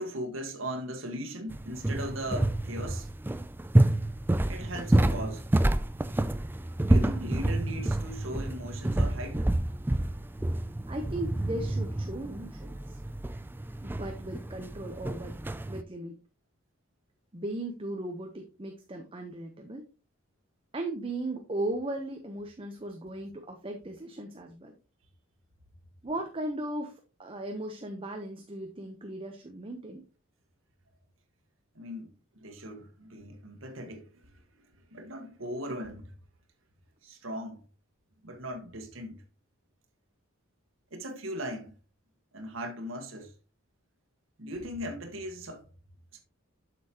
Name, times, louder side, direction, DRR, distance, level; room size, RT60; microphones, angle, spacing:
voice 1, 0.0-3.1 4.5-5.5 6.5-9.5 31.7-36.1 37.0-37.6 38.2-39.2 40.9-41.7 42.3-43.3 44.4-45.7 46.1-46.2, equal, 70° right, 1.4 m, -39 dB
sound 1, 1.5-15.8, right 1 dB, 10° right, 0.3 m, -28 dB
voice 2, 10.9-13.0 13.8-15.3 15.7-16.2 17.3-19.8 20.7-24.7 26.0-26.9 27.2-30.0, right 1 dB, 25° right, 0.8 m, -37 dB
7.9 x 6.8 x 2.9 m
head